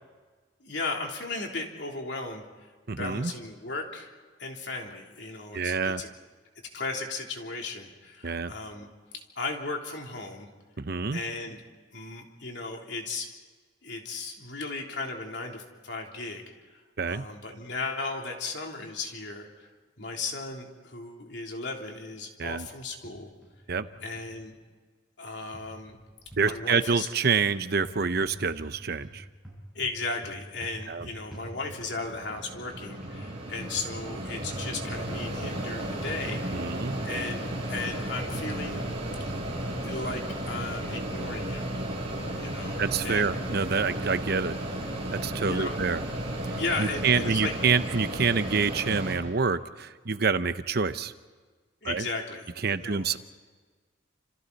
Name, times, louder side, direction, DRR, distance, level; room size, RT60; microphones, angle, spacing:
voice 1, 0.6-2.4 3.0-4.1 4.4-6.1 6.7-8.9 9.3-10.5 11.1-11.6 11.9-13.3 13.8-16.4 16.7-16.8 17.1-19.7 20.0-23.3 24.0-24.6 25.2-26.0 26.4-27.1 29.7-36.7 37.0-38.9 39.8-41.7 42.4-43.3 45.5-45.8 46.5-47.5 51.8-53.2, left 3 dB, 65° left, 1 dB, 3.4 m, -36 dB
voice 2, 2.9-3.3 5.5-6.0 8.2-8.5 10.8-11.2 17.0-17.3 22.4-22.7 23.7-23.9 26.4-29.3 30.9-31.1 36.5-37.0 42.8-44.6 45.1-46.0 46.4-51.1 51.8-52.1 52.6-53.2, right 5 dB, 55° right, 11 dB, 0.9 m, -27 dB
sound 1, 23.0-23.5 23.8-24.3 25.5-26.5 27.8-28.8 29.0-32.0 33.0-33.2 33.7-34.0 34.4-34.7 35.1-35.3 36.1-37.6 37.8-39.7, right 1 dB, 5° right, 7.6 m, -45 dB
Mechanisms, 31.2-49.2, right 1 dB, 30° right, 5.6 m, -34 dB
29.5 x 27.5 x 4.2 m, 1.4 s
head